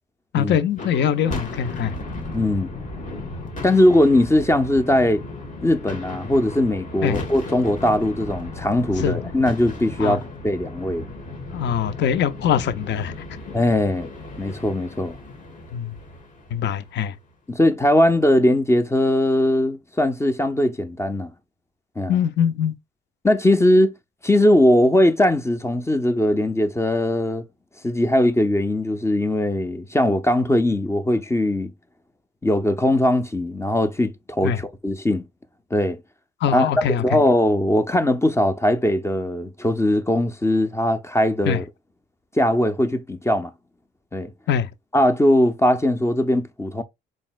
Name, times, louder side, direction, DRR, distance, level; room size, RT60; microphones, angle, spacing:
voice 1, 0.3-1.9 7.0-7.2 9.0-9.2 10.0-10.2 11.5-13.1 15.7-16.0 16.5-17.1 22.1-22.7 34.4-34.6 36.4-37.2 41.4-41.6 44.5-44.7, left 8 dB, 65° left, 0.6 m, -22 dB
sound 1, 0.7-17.1, left 2 dB, 40° left, 1.5 m, -35 dB
voice 2, 2.3-2.7 3.6-5.2 5.6-11.0 13.5-14.1 14.4-15.2 17.5-21.3 22.0-22.1 23.2-23.9 24.2-27.4 27.8-31.7 32.4-35.2 35.7-36.0 36.5-36.7 37.0-41.6 42.3-43.5 44.1-44.3 44.9-46.8, left 1 dB, 15° left, 0.5 m, -20 dB
4.1 x 3.6 x 2.3 m
cardioid pair, 90°, 20 cm